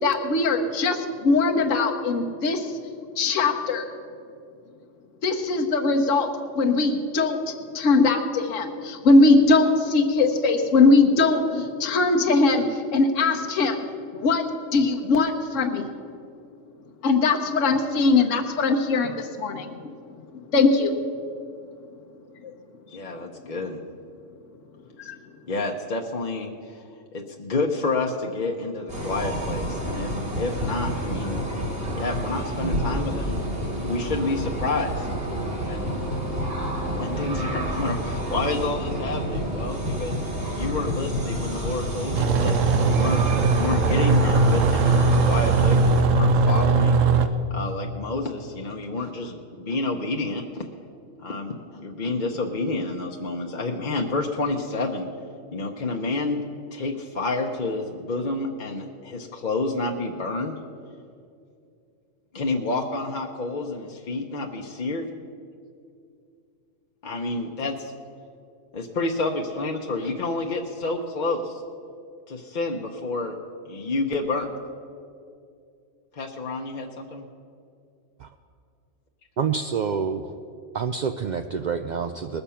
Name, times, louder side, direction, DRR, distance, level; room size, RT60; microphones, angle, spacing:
voice 1, 0.0-2.7 3.2-3.9 5.2-13.9 14.1-15.9 17.0-19.9 20.5-20.9 25.0-25.2, left 3 dB, 75° left, 3 dB, 1.3 m, -21 dB
voice 2, 22.9-23.8 25.5-26.8 27.1-31.4 31.9-35.1 35.6-36.0 36.9-47.0 47.5-50.7 51.2-55.1 55.5-56.4 56.7-60.6 62.3-65.1 67.0-67.9 68.7-71.6 72.3-73.4 73.7-74.5 76.1-77.2, left 3 dB, 45° left, 1 dB, 0.8 m, -29 dB
sound 1, 28.9-46.0, right 1 dB, 50° right, 2.3 m, -29 dB
sound 2, 42.2-47.3, right 4 dB, 90° right, 1.1 m, -19 dB
voice 3, 79.4-80.3 80.7-82.4, right 6 dB, 70° right, 7 dB, 0.4 m, -27 dB
20.5 x 6.9 x 5.7 m, 2.4 s
omnidirectional pair, 1.3 m